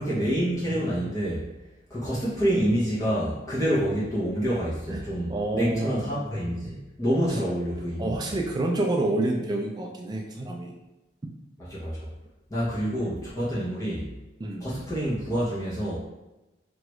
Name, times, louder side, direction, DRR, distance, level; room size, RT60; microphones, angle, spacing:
voice 1, 0.0-1.5 1.9-8.4 11.6-12.1 12.5-14.1 14.6-16.0, equal, 15° left, -9 dB, 0.7 m, -27 dB
voice 2, 4.9-6.1 8.0-10.7 14.4-14.7, right 2 dB, 20° right, 1 dB, 0.3 m, -28 dB
3.1 x 2.4 x 3.0 m, 1.0 s
head